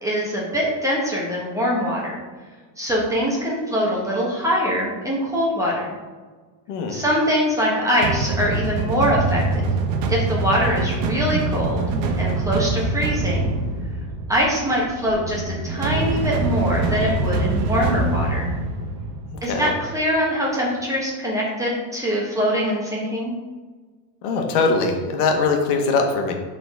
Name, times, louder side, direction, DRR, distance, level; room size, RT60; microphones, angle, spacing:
voice 1, 0.0-2.2 2.8-5.9 6.9-9.7 10.1-11.9 12.2-13.5 14.3-18.4 19.4-23.3, equal, 5° right, -4 dB, 1.1 m, -23 dB
sound 1, 8.0-19.9, right 3 dB, 70° right, 1.1 m, -24 dB
voice 2, 19.3-19.7 24.2-26.3, left 4 dB, 65° left, 2 dB, 1.5 m, -21 dB
10.5 x 4.0 x 3.6 m, 1.4 s
supercardioid pair, 160°, 49 cm